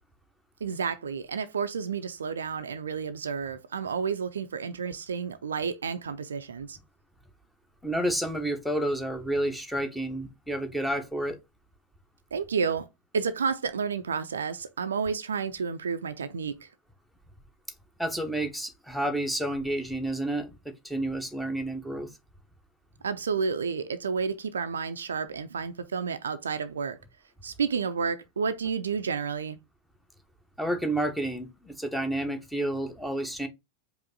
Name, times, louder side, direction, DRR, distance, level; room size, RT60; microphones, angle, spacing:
voice 1, 0.6-6.8 12.3-12.9 13.1-16.7 23.0-27.0 27.4-29.6, right 5 dB, 70° right, 0.5 m, -31 dB
voice 2, 7.8-11.4 18.0-22.1 30.6-33.5, right 1 dB, ahead, 1.0 m, -30 dB
4.9 x 2.7 x 3.8 m
figure-of-eight pair, 90°, 0 cm